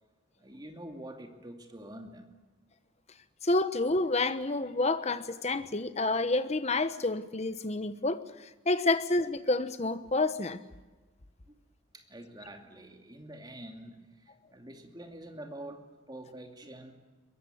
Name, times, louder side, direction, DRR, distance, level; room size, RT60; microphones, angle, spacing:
voice 1, 0.4-2.2 11.5-11.6 11.9-16.9, right 1 dB, 20° right, 2.6 m, -46 dB
voice 2, 3.4-8.2 8.7-10.6, left 2 dB, 35° left, 1.1 m, -29 dB
22.5 x 22.5 x 9.5 m
head